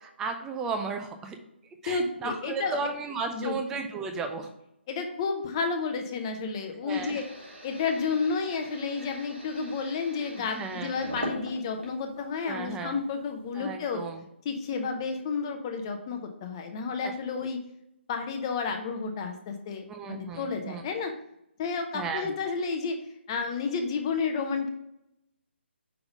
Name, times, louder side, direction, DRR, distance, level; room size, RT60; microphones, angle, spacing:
voice 1, 0.0-1.4 1.8-4.5 6.8-7.2 10.6-10.9 12.4-12.9 13.6-14.2 17.0-17.1 19.9-20.8 21.9-22.3, right 4 dB, 10° right, 5 dB, 0.4 m, -34 dB
voice 2, 1.8-2.8 3.3-3.6 4.9-7.3 7.6-14.0 14.4-17.6 18.1-21.1 21.6-23.0 23.3-24.7, left 5 dB, 25° left, 5 dB, 0.7 m, -31 dB
sound 1, 6.9-12.4 12.8-13.6, equal, 75° right, 2.3 m, -42 dB
5.6 x 3.9 x 5.2 m, 0.80 s
figure-of-eight pair, 145°, 6 cm